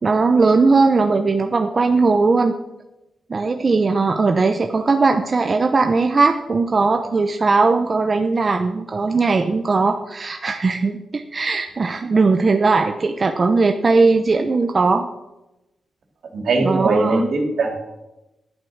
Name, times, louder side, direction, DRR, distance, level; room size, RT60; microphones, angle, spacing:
voice 1, 0.0-2.5 3.3-15.1 16.6-17.2, right 3 dB, 35° right, 5 dB, 0.8 m, -18 dB
voice 2, 16.3-17.8, right 3 dB, 75° right, 2 dB, 3.1 m, -20 dB
11.0 x 9.0 x 6.4 m, 0.95 s
cardioid pair, 105°, 0 cm